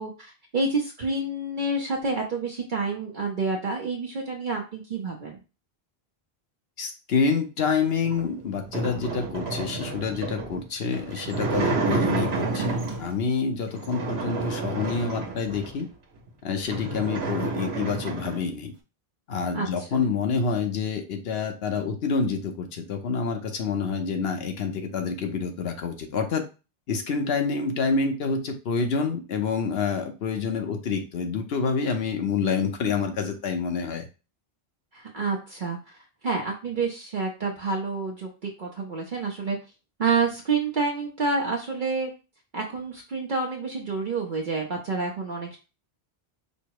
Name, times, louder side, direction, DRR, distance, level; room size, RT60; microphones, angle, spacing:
voice 1, 0.0-5.4 19.5-20.0 34.9-35.8 36.2-39.6 40.0-42.1 42.5-45.6, right 3 dB, 55° right, 0 dB, 0.9 m, -28 dB
voice 2, 6.8-15.9 16.4-18.7 19.3-26.4 26.9-34.1, left 5 dB, 75° left, 5 dB, 1.0 m, -27 dB
sound 1, 8.0-13.2 13.7-15.8 16.3-16.4 16.6-18.5, right 3 dB, 85° right, 1.1 m, -30 dB
5.2 x 2.1 x 4.7 m, 0.31 s
omnidirectional pair, 1.0 m